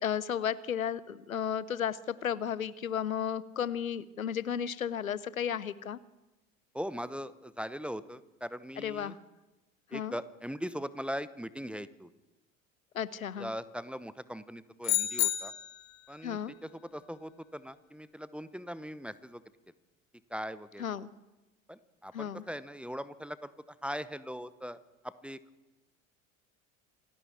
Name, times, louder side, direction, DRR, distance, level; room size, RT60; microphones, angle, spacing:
voice 1, 0.0-6.0 8.8-9.1 9.9-10.2 12.9-13.5 16.2-16.5 20.8-21.1 22.1-22.4, left 8 dB, 80° left, 20 dB, 0.8 m, -33 dB
voice 2, 6.7-9.2 9.9-12.1 13.4-15.5 16.1-19.4 20.3-20.8 21.7-23.5 23.8-24.8 25.0-25.4, equal, 5° right, 16 dB, 0.8 m, -40 dB
sound 1, 14.8-15.9, left 14 dB, 40° left, 1.5 m, -30 dB
27.0 x 12.0 x 8.4 m, 1.1 s
figure-of-eight pair, 70°, 41 cm